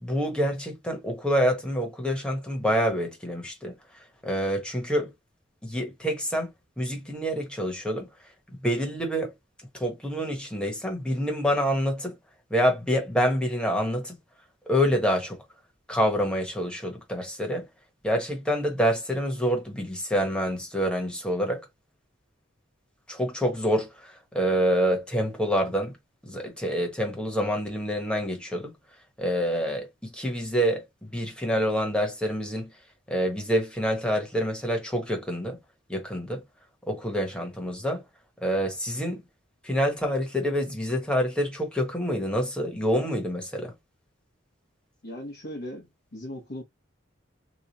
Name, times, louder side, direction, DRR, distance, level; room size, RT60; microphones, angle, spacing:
voice 1, 0.0-3.7 4.2-5.1 5.6-6.5 6.8-8.1 8.6-9.3 9.7-12.2 12.5-14.2 14.7-15.4 15.9-17.6 18.0-21.6 23.1-26.0 26.2-28.7 29.2-32.7 33.1-35.6 35.9-36.4 36.9-38.0 38.4-39.2 39.6-43.7, equal, 5° left, 1.1 m, -27 dB
voice 2, 45.0-46.6, left 1 dB, 50° left, 0.9 m, -38 dB
3.0 x 2.2 x 4.0 m
head